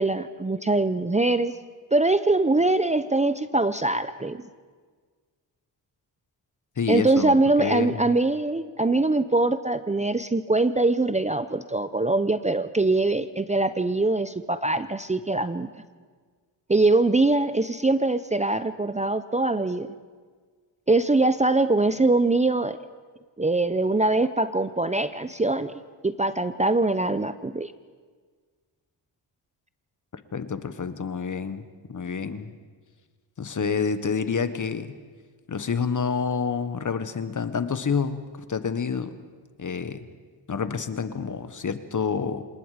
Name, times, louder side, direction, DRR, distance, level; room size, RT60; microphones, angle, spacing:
voice 1, 0.0-1.5 1.9-4.4 6.9-15.7 16.7-19.9 20.9-22.8 23.4-27.7, right 2 dB, 15° right, 12 dB, 0.6 m, -23 dB
voice 2, 6.8-8.1 30.3-32.5 33.4-34.9 35.5-38.2 38.5-39.2 39.6-40.0 40.5-42.4, left 6 dB, 40° left, 11 dB, 1.3 m, -28 dB
27.0 x 20.0 x 5.0 m, 1.5 s
cardioid pair, 85°, 45 cm